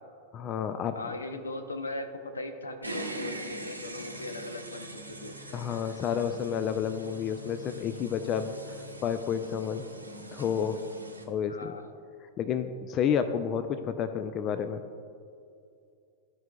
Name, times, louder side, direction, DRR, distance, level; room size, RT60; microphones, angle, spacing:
voice 1, 0.3-1.0 5.5-9.9 10.3-10.8 11.3-11.8 12.4-14.8, left 8 dB, 35° left, 9 dB, 0.3 m, -30 dB
voice 2, 0.9-2.1 2.3-4.9 5.2-5.6 11.5-11.8, left 2 dB, 75° left, 7 dB, 0.6 m, -38 dB
sound 1, 2.8-11.2, right 1 dB, 85° right, 0.9 m, -42 dB
14.0 x 4.9 x 2.2 m, 2.5 s
figure-of-eight pair, 90°, 0 cm